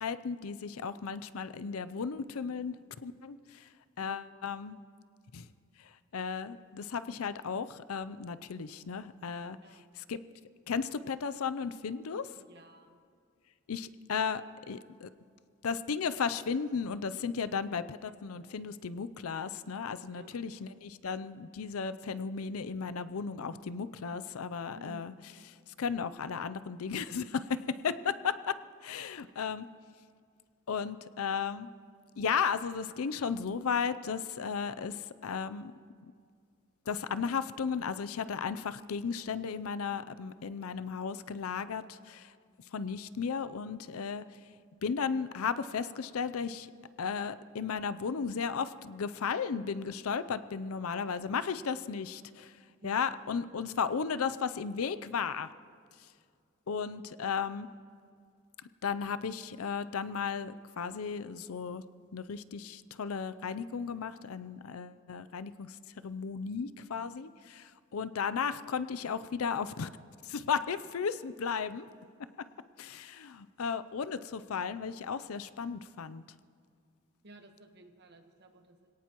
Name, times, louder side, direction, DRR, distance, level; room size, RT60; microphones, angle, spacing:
voice 1, 0.0-3.7 4.0-4.8 5.3-5.5 5.8-10.2 10.7-12.3 13.7-15.1 15.6-25.1 25.7-29.7 30.7-31.7 32.2-35.7 36.0-36.1 36.9-42.3 42.7-44.4 44.8-46.7 47.0-52.6 52.8-55.5 56.7-57.7 58.8-61.9 62.1-69.9 70.2-71.9 72.4-72.5 72.8-76.2, left 6 dB, 85° left, 13 dB, 0.5 m, -35 dB
voice 2, 12.4-13.0 20.1-20.4 24.7-25.1 52.8-53.1 77.2-78.9, right 1 dB, 50° right, 5 dB, 1.3 m, -54 dB
25.5 x 17.5 x 3.0 m, 2.2 s
head